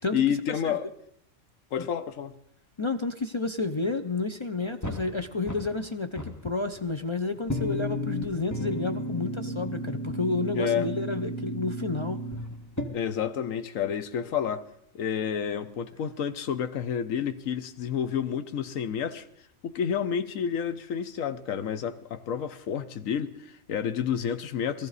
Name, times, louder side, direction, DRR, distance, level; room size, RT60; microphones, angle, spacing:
voice 1, 0.1-0.9 1.7-2.3 10.5-10.9 12.9-14.7 14.9-19.2 19.6-24.9, left 8 dB, 90° left, 1.2 m, -30 dB
voice 2, 2.8-12.2, left 3 dB, 40° left, 0.4 m, -30 dB
sound 1, 4.8-5.9 6.2-7.0 7.5-12.8, equal, 15° left, 1.4 m, -34 dB
19.5 x 14.0 x 4.1 m
omnidirectional pair, 1.3 m